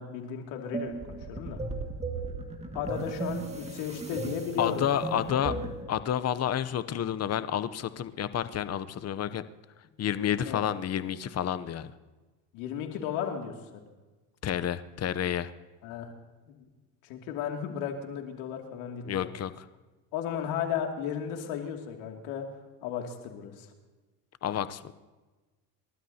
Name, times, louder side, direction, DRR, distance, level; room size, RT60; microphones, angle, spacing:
voice 1, 0.0-1.6 2.7-5.7 10.4-10.6 12.5-13.5 15.8-16.1 16.6-16.7 17.0-19.3 20.1-22.5 22.8-23.7, left 8 dB, 75° left, 2 dB, 2.6 m, -35 dB
sound 1, 0.7-5.9, right 3 dB, 15° right, 2.0 m, -36 dB
voice 2, 4.6-5.5 5.9-9.4 10.0-11.9 14.4-15.5 19.1-19.7 24.4-24.9, left 10 dB, 30° left, 14 dB, 0.7 m, -30 dB
29.0 x 12.5 x 2.8 m, 1.2 s
supercardioid pair, 100°, 48 cm